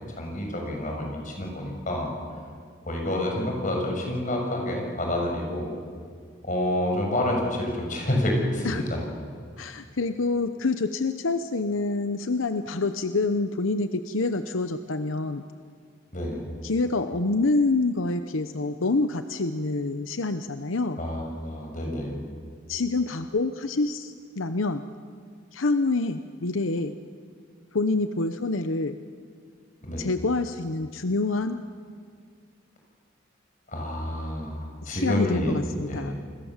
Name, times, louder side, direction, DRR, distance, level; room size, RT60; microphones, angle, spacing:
voice 1, 0.2-2.1 2.9-5.7 6.4-9.0 16.1-16.4 21.0-22.2 29.9-30.1 33.7-35.6 35.9-36.1, left 1 dB, 40° left, 1 dB, 6.5 m, -28 dB
voice 2, 9.6-15.4 16.6-21.0 22.7-24.8 25.5-26.9 27.7-29.0 30.0-31.6 34.8-36.2, left 3 dB, 85° left, 9 dB, 0.9 m, -27 dB
28.5 x 21.5 x 7.4 m, 2.1 s
head